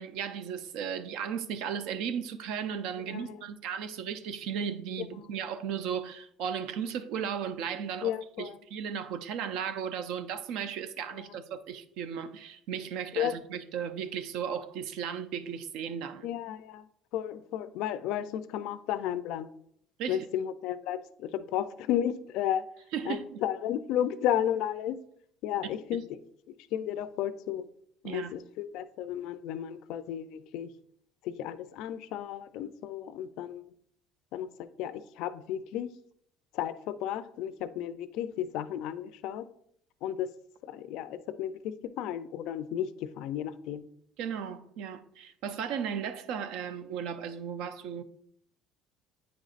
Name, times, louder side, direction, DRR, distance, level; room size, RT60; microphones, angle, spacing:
voice 1, 0.0-16.3 20.0-20.3 22.9-23.4 25.9-26.0 28.0-28.4 44.2-48.0, right 7 dB, 70° right, 0.5 m, -35 dB
voice 2, 3.1-3.4 8.0-8.5 13.2-13.3 16.2-16.8 17.1-19.5 20.1-22.6 23.1-25.0 25.4-26.0 26.7-27.6 28.0-30.7 31.2-33.6 34.3-35.9 36.5-39.5 40.0-40.3 40.7-43.8, left 10 dB, 65° left, 0.4 m, -33 dB
8.5 x 5.1 x 2.5 m
cardioid pair, 155°, 0 cm